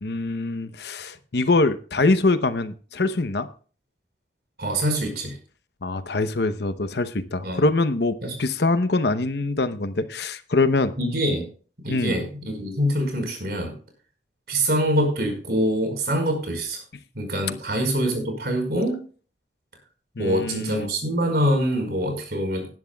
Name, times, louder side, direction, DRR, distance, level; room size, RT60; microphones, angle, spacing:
voice 1, 0.0-3.5 5.8-10.9 11.9-12.2 20.2-20.9, left 3 dB, 65° left, 11 dB, 0.8 m, -24 dB
voice 2, 4.6-5.4 7.4-7.6 8.2-8.3 11.0-11.4 11.8-13.7 14.5-16.8 17.1-19.0 20.2-22.7, equal, 60° right, 3 dB, 4.9 m, -24 dB
18.5 x 11.0 x 2.3 m, 0.40 s
head